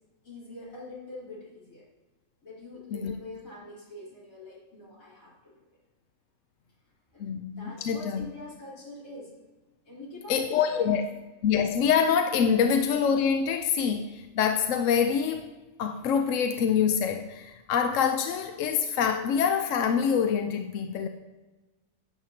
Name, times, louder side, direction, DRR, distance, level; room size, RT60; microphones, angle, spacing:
voice 1, 0.2-1.8 2.4-5.6 7.1-9.3 9.9-11.0, left 2 dB, 90° left, -7 dB, 4.1 m, -45 dB
voice 2, 7.2-8.3 10.3-11.1 11.4-15.5 15.8-21.1, left 7 dB, 70° left, 6 dB, 0.9 m, -25 dB
11.5 x 8.6 x 2.8 m, 1.2 s
omnidirectional pair, 1.4 m